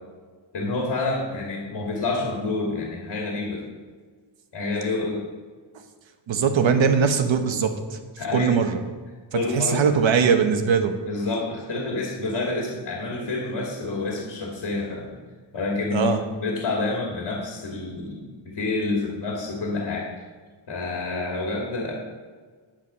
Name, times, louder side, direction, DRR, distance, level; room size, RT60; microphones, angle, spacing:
voice 1, 0.5-3.6 4.5-5.2 8.2-8.6 9.3-9.8 11.1-15.2 15.5-16.1 16.4-20.1 20.7-21.9, left 3 dB, 60° left, -2 dB, 2.4 m, -28 dB
voice 2, 6.3-8.0 8.3-8.8 9.3-10.9 15.9-16.2, right 6 dB, 70° right, 6 dB, 1.3 m, -21 dB
10.5 x 7.8 x 5.7 m, 1.5 s
cardioid pair, 95°, 48 cm